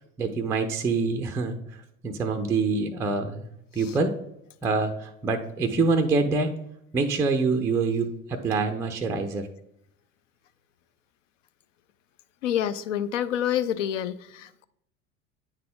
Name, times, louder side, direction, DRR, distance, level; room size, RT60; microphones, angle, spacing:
voice 1, 0.2-1.6 2.0-3.5 3.7-4.1 4.6-6.5 6.9-9.5, right 3 dB, 5° right, 0.3 m, -25 dB
voice 2, 12.4-14.6, left 10 dB, 65° left, 0.5 m, -28 dB
9.0 x 3.8 x 3.6 m
figure-of-eight pair, 70°, 40 cm